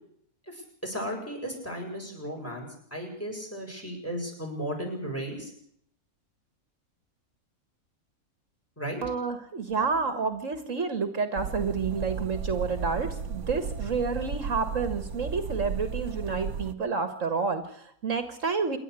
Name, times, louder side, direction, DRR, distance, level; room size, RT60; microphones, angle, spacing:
voice 1, 0.5-5.5 8.8-9.0, equal, 10° left, 2 dB, 7.8 m, -35 dB
voice 2, 9.0-18.8, right 5 dB, 60° right, 9 dB, 1.9 m, -29 dB
sound 1, 11.4-16.7, right 5 dB, 90° right, 1.5 m, -34 dB
28.0 x 11.5 x 8.2 m, 0.67 s
omnidirectional pair, 1.5 m